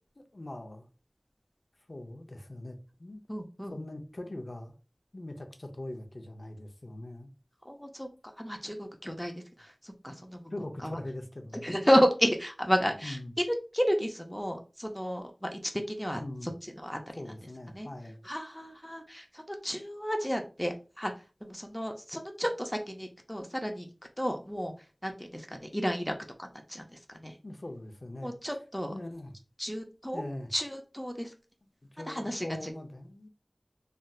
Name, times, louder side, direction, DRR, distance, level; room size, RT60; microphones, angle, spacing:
voice 1, 0.2-0.9 1.9-3.2 3.7-4.7 5.1-7.3 10.5-11.7 13.0-13.3 16.2-16.5 17.2-18.2 27.4-28.4 28.9-29.3 30.1-30.5 31.9-33.3, left 1 dB, 65° left, 0.5 m, -41 dB
voice 2, 3.3-3.7 7.7-8.1 8.4-9.3 9.6-10.5 10.8-11.0 11.6-13.2 13.5-16.5 16.8-17.2 17.7-17.9 18.2-21.1 21.4-23.9 24.2-24.7 25.0-27.3 28.2-28.9 29.6-30.2 30.5-31.3 32.1-32.7, equal, 10° left, 0.5 m, -32 dB
3.2 x 2.6 x 2.3 m
wide cardioid pair, 40°, 0 cm